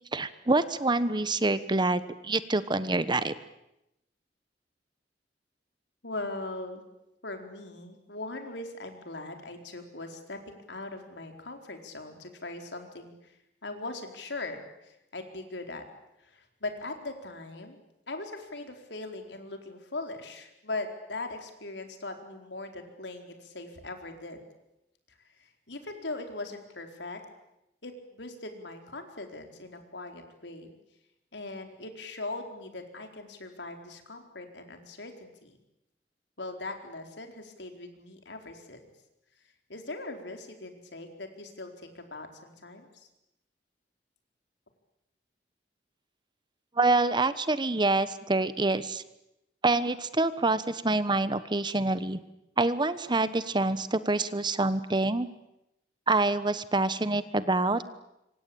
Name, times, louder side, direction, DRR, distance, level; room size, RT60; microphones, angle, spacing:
voice 1, 0.1-3.3 46.8-49.0 49.6-52.2 52.6-55.3 56.1-57.8, right 2 dB, 25° right, 13 dB, 1.2 m, -26 dB
voice 2, 6.0-6.8 7.2-13.3 13.6-15.8 16.2-17.8 18.1-24.4 25.7-27.2 27.8-30.7 31.3-35.6 36.4-38.8 39.7-43.1, left 2 dB, 85° left, 5 dB, 4.4 m, -40 dB
26.0 x 25.0 x 8.7 m, 0.87 s
head